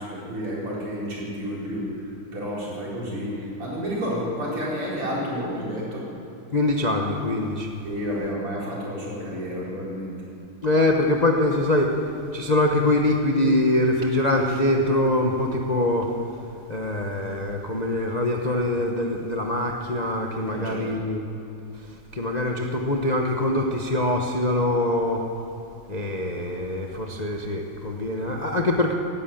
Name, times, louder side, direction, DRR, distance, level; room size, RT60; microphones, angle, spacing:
voice 1, 0.0-6.1 7.8-10.1 20.5-20.9, equal, 80° right, -6 dB, 5.3 m, -30 dB
voice 2, 6.5-7.7 10.6-12.0 12.3-16.1 16.7-21.2 22.1-25.2 25.9-28.9, left 1 dB, 35° left, 1 dB, 0.6 m, -23 dB
17.0 x 11.5 x 7.2 m, 2.9 s
omnidirectional pair, 2.4 m